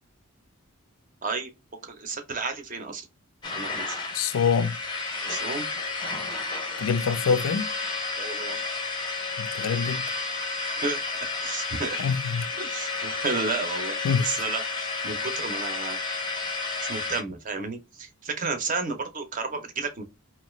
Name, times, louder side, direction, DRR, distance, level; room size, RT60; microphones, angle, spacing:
voice 1, 1.2-1.5 1.8-3.1 3.6-4.0 5.2-5.6 8.2-8.6 10.8-12.0 12.6-16.0 16.8-20.0, right 4 dB, 40° right, 0.6 m, -32 dB
sound 1, 3.4-17.2, left 3 dB, 20° left, 0.5 m, -31 dB
voice 2, 4.1-4.8 6.8-7.7 9.4-10.1 12.0-12.5 14.0-14.4, left 6 dB, 80° left, 0.4 m, -25 dB
2.6 x 2.3 x 3.0 m
head